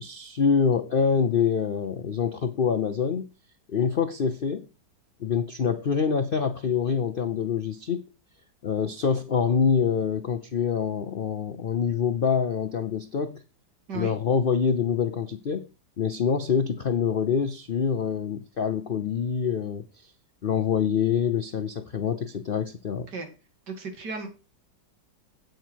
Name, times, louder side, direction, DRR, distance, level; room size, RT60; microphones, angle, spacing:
voice 1, 0.0-3.3 3.7-4.7 5.2-8.0 8.6-13.4 13.9-15.7 16.0-20.1 20.4-23.1, left 6 dB, 85° left, 11 dB, 0.4 m, -25 dB
voice 2, 23.7-24.3, right 4 dB, 65° right, 5 dB, 2.8 m, -34 dB
8.9 x 7.9 x 4.5 m, 0.31 s
omnidirectional pair, 1.9 m